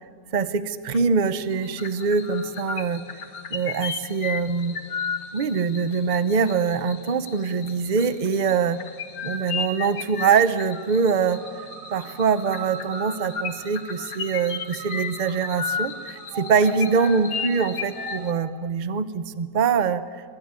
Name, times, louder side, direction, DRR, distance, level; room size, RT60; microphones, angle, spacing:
voice 1, 0.3-3.0 3.5-4.7 5.3-8.8 9.2-11.4 11.9-20.0, right 5 dB, 35° right, 13 dB, 0.8 m, -23 dB
sound 1, 0.9-1.2 1.5-18.3, left 6 dB, 55° left, 1.7 m, -35 dB
sound 2, 11.2-18.7, right 8 dB, 70° right, 1.6 m, -41 dB
23.5 x 22.5 x 9.7 m, 2.1 s
omnidirectional pair, 1.9 m